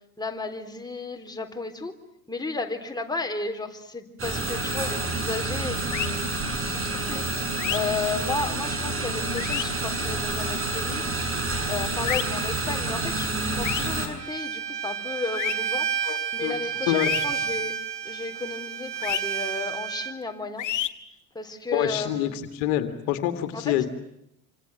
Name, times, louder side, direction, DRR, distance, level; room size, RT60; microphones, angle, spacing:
voice 1, 0.2-1.9 2.3-7.2 7.7-11.0 11.7-17.7 18.0-20.7 21.3-22.3 23.5-23.9, left 3 dB, 10° left, 4 dB, 3.9 m, -33 dB
sound 1, 4.2-14.1, right 2 dB, 25° right, 7.3 m, -28 dB
sound 2, 5.9-6.1 7.6-7.8 9.4-9.7 12.1-12.2 13.6-13.9 15.3-15.5 17.0-17.3 19.0-19.2 20.6-20.9, left 11 dB, 40° left, 1.9 m, -28 dB
Bowed string instrument, 14.2-20.1, right 7 dB, 85° right, 1.8 m, -31 dB
voice 2, 16.0-16.5 16.8-17.1 21.7-23.9, left 12 dB, 60° left, 8 dB, 2.3 m, -26 dB
27.0 x 26.5 x 7.6 m, 0.78 s
hypercardioid pair, 70°, 46 cm